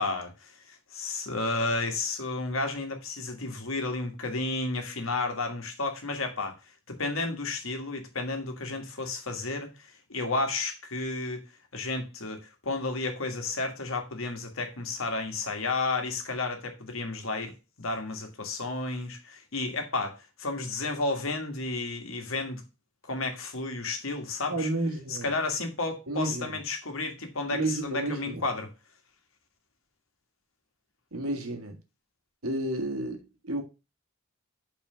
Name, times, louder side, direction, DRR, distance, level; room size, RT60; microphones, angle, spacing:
voice 1, 0.0-6.5 6.9-9.7 10.1-11.4 11.7-17.5 17.8-22.6 23.0-24.7 25.1-28.7, left 3 dB, 65° left, 1.6 m, -32 dB
voice 2, 24.5-25.3 26.1-26.6 27.5-28.4 31.1-31.8 32.4-33.6, right 2 dB, 90° right, 1.7 m, -31 dB
5.7 x 4.2 x 5.6 m
head